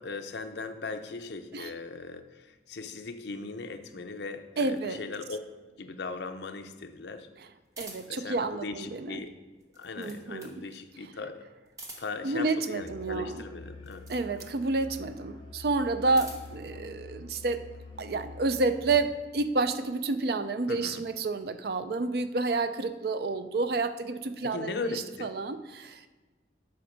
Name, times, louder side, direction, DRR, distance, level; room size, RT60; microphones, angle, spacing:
voice 1, 0.0-5.4 5.7-7.3 8.1-9.3 9.8-11.5 12.0-14.1 20.7-21.0 24.4-25.3, left 4 dB, 70° left, 7 dB, 0.6 m, -38 dB
voice 2, 4.6-5.0 7.8-9.2 10.0-10.7 12.2-13.4 14.1-17.6 18.0-24.9 25.2-26.1, right 3 dB, 55° right, 10 dB, 0.4 m, -30 dB
sound 1, 7.7-8.3 9.6-10.6 11.7-12.3 13.8-14.6 15.8-16.6, right 1 dB, 20° right, 1.0 m, -47 dB
Musical instrument, 12.8-19.2, left 3 dB, 30° left, 1.0 m, -46 dB
7.8 x 5.3 x 5.1 m, 1.3 s
head